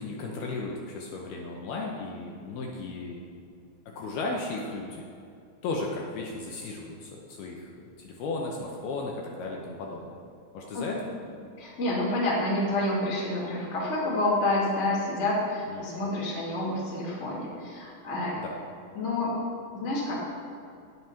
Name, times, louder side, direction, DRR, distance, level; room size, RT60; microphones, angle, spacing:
voice 1, 0.0-3.2 4.0-5.0 5.6-7.7 8.0-10.2 10.5-11.1 15.7-16.0 18.4-18.5, left 3 dB, 75° left, -1 dB, 2.6 m, -35 dB
voice 2, 11.6-18.4 18.9-19.3 19.7-20.2, left 2 dB, 25° left, -5 dB, 1.5 m, -28 dB
10.5 x 7.9 x 5.7 m, 2.5 s
omnidirectional pair, 5.1 m